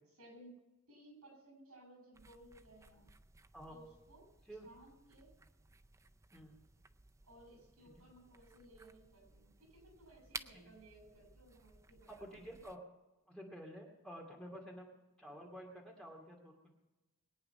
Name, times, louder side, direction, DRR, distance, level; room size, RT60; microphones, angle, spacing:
voice 1, 0.2-0.6 0.9-3.1 3.7-4.2 4.6-5.3 7.2-12.4, right 1 dB, 80° right, 3 dB, 6.6 m, -60 dB
sound 1, 2.1-12.8, right 4 dB, 15° right, 0.4 m, -56 dB
voice 2, 12.1-12.8 13.3-14.9 15.2-16.7, equal, 5° left, -1 dB, 2.3 m, -51 dB
21.5 x 9.3 x 5.8 m, 1.1 s
head